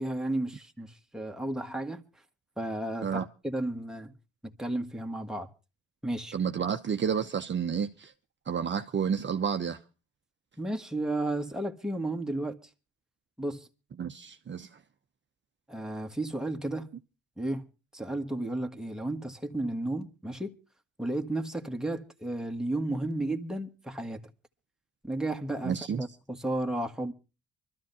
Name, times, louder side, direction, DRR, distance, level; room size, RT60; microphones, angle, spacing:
voice 1, 0.0-2.0 2.6-4.1 4.4-5.5 6.0-6.3 10.6-12.6 13.4-13.7 15.7-16.9 17.4-17.7 17.9-20.5 21.0-24.3 25.0-27.1, right 1 dB, ahead, 1.6 m, -33 dB
voice 2, 6.3-8.1 8.5-9.8 14.0-14.7 25.6-26.0, right 7 dB, 40° right, 0.8 m, -30 dB
24.5 x 13.5 x 2.7 m
cardioid pair, 90°, 30 cm